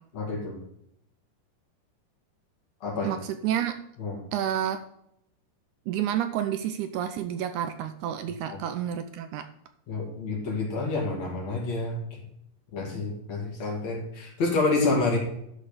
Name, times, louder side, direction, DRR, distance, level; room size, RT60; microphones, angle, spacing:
voice 1, 0.1-0.6 2.8-3.2 4.0-4.2 8.5-8.6 9.9-12.2 12.7-15.2, left 3 dB, 55° left, -2 dB, 3.5 m, -28 dB
voice 2, 3.0-3.7 4.3-4.8 5.9-9.5, right 10 dB, 80° right, 8 dB, 1.9 m, -29 dB
11.5 x 4.1 x 6.7 m, 0.77 s
omnidirectional pair, 3.8 m